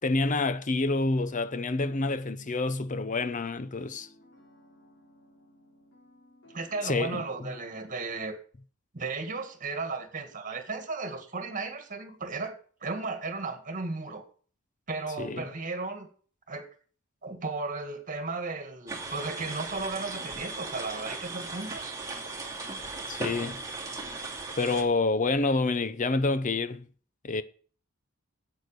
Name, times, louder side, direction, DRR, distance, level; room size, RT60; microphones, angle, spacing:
voice 1, 0.0-4.1 6.8-7.5 15.2-15.4 23.1-23.6 24.6-26.9 27.2-27.4, left 3 dB, 40° left, 0.7 m, -28 dB
sound 1, 3.0-8.4, equal, 90° left, 5.8 m, -57 dB
voice 2, 6.5-8.4 8.9-14.2 14.9-16.1 16.5-16.7 17.2-22.0, right 3 dB, 40° right, 2.0 m, -35 dB
sound 2, 18.9-24.8, right 3 dB, 15° right, 2.4 m, -37 dB
8.4 x 8.2 x 6.7 m
head